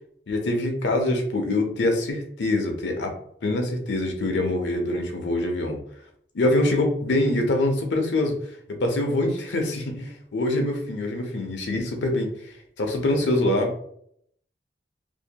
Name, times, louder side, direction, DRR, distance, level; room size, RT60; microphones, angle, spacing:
voice 1, 0.3-3.1 3.4-5.8 6.3-8.4 8.7-13.9, left 1 dB, 85° left, 3 dB, 0.6 m, -24 dB
2.6 x 2.1 x 2.8 m, 0.67 s
head